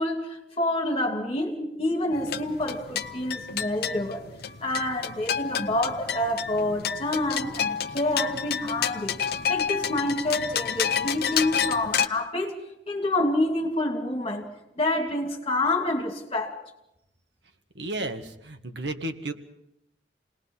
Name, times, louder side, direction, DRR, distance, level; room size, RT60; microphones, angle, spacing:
voice 1, 0.0-4.3 4.6-9.2 9.5-12.5 12.9-14.5 14.8-16.6, left 1 dB, 35° left, 2.9 m, -27 dB
sound 1, 2.1-12.1, left 8 dB, 60° left, 0.8 m, -30 dB
voice 2, 17.7-19.3, right 2 dB, 70° right, 1.7 m, -33 dB
28.5 x 19.5 x 5.6 m
head